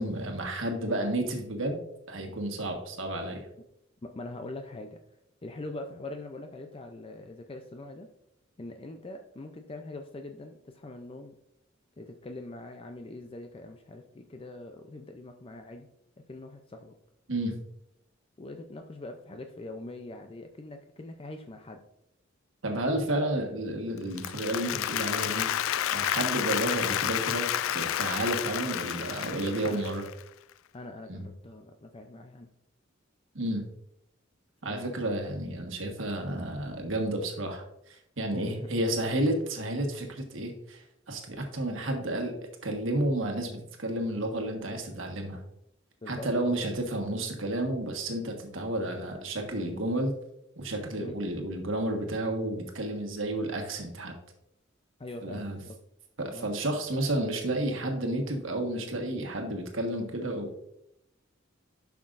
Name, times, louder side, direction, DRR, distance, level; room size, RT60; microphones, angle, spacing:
voice 1, 0.0-3.5 17.3-17.6 22.6-25.5 25.9-30.0 31.1-31.3 33.3-33.6 34.6-42.4 42.6-45.4 46.1-50.1 50.6-54.1 55.2-55.6 56.2-60.6, right 1 dB, 75° right, 3 dB, 1.4 m, -31 dB
voice 2, 4.0-5.0 5.4-8.1 8.6-11.3 12.0-15.9 16.3-16.9 18.4-21.8 29.6-29.8 30.7-32.5 34.6-34.9 38.3-38.9 46.0-46.3 51.0-51.2 55.0-55.7 56.3-56.5, left 2 dB, 30° left, 5 dB, 0.5 m, -43 dB
Applause, 24.0-30.2, left 11 dB, 85° left, 0.3 m, -30 dB
11.5 x 5.9 x 2.5 m, 0.80 s
head